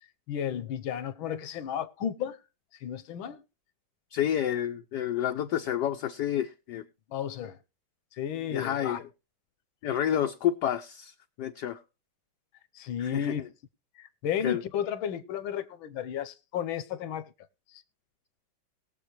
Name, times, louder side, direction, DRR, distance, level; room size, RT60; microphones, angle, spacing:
voice 1, 0.3-2.4 2.8-3.4 7.1-7.6 8.1-9.0 12.7-13.4 14.0-17.3 17.7-17.8, left 9 dB, 80° left, 1.7 m, -33 dB
voice 2, 4.1-6.8 8.5-9.0 9.8-11.8 13.0-13.5 14.4-14.6, left 10 dB, 65° left, 1.1 m, -29 dB
20.5 x 7.2 x 3.1 m
omnidirectional pair, 2.2 m